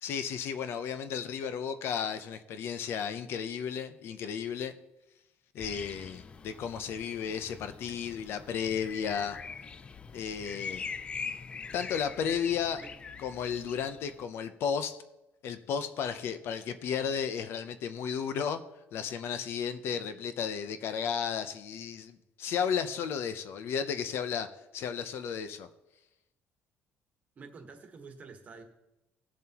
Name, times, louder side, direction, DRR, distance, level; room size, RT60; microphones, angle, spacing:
voice 1, 0.0-4.7 5.5-9.4 10.1-10.9 11.7-12.8 13.2-15.0 15.4-18.6 18.9-25.7, left 7 dB, 55° left, 10 dB, 0.7 m, -33 dB
sound 1, 5.6-14.2, left 5 dB, 20° left, 0.3 m, -43 dB
voice 2, 27.3-28.6, right 4 dB, 30° right, 5 dB, 1.4 m, -48 dB
18.5 x 7.4 x 2.9 m, 0.96 s
cardioid pair, 165°, 5 cm